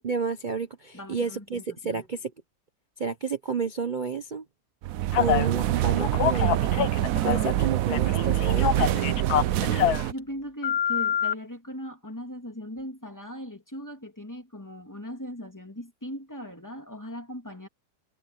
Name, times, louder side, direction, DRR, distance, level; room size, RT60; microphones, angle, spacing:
voice 1, 0.0-2.3 3.0-4.4 5.2-6.6 6.9-9.1, right 5 dB, 35° right, 0.8 m, -31 dB
voice 2, 0.9-2.0 9.6-17.7, equal, 10° left, 2.9 m, -39 dB
sound 1, 4.8-10.1, right 13 dB, 65° right, 0.9 m, -25 dB
Telephone, 5.1-5.5 6.0-7.6 7.9-10.1 10.6-11.3, left 10 dB, 75° left, 1.4 m, -26 dB
omnidirectional pair, 1.7 m